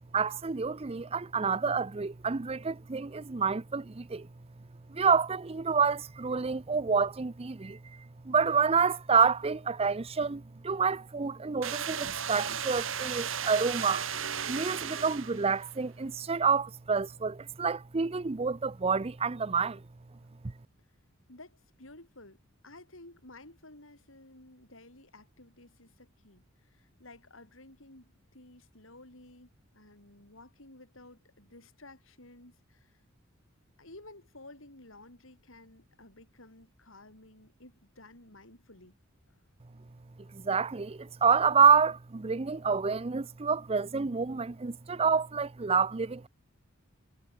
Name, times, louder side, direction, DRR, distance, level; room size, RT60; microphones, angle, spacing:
voice 1, 0.1-4.3 4.9-14.1 14.5-19.8 40.3-46.3, right 5 dB, 30° right, 0.6 m, -28 dB
sound 1, 11.6-15.6, right 8 dB, 70° right, 3.7 m, -35 dB
voice 2, 21.3-22.4 22.6-33.0 33.8-39.0 39.3-39.4, left 2 dB, 70° left, 7.5 m, -53 dB
head